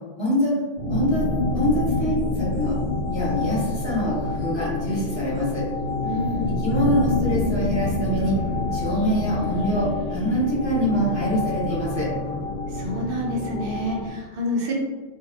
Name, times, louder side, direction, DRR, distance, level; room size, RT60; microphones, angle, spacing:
voice 1, 0.2-0.6 0.9-1.3 1.5-2.8 3.1-5.6 6.6-8.3 8.7-12.1, equal, 25° left, -7 dB, 1.0 m, -24 dB
sound 1, 0.8-14.1, left 2 dB, 70° left, 1.1 m, -27 dB
sound 2, 1.1-12.4, left 1 dB, 90° right, 1.0 m, -39 dB
voice 2, 6.0-6.6 12.7-14.7, left 1 dB, 65° right, 0 dB, 0.8 m, -28 dB
2.5 x 2.4 x 3.2 m, 1.3 s
omnidirectional pair, 1.1 m